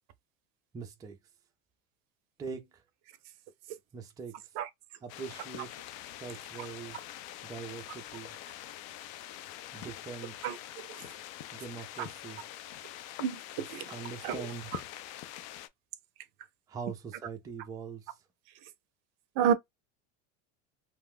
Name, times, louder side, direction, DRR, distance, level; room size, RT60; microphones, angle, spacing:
voice 1, 0.7-1.2 2.4-2.8 3.9-4.6 5.0-5.7 6.2-7.0 7.4-8.3 9.7-10.4 11.5-12.4 13.8-14.7 16.7-18.2, right 5 dB, 10° right, 0.4 m, -42 dB
sound 1, 5.1-15.7, left 13 dB, 55° left, 0.5 m, -45 dB
voice 2, 13.2-13.9 14.2-14.4 19.4-19.5, right 8 dB, 60° right, 0.6 m, -28 dB
2.4 x 2.2 x 3.5 m
supercardioid pair, 115°, 39 cm